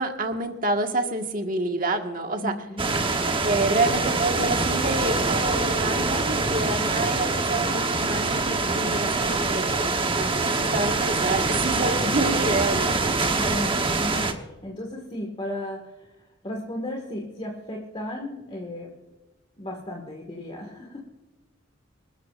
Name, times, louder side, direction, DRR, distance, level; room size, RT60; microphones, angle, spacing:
voice 1, 0.0-2.5 3.4-9.7 10.2-13.1, right 2 dB, 45° right, 4 dB, 1.7 m, -28 dB
voice 2, 2.4-3.1 13.4-18.9 19.6-21.0, left 1 dB, 30° left, 0 dB, 1.8 m, -35 dB
sound 1, 2.8-14.3, right 3 dB, 25° right, 1.1 m, -24 dB
26.0 x 13.0 x 2.5 m, 1.1 s
head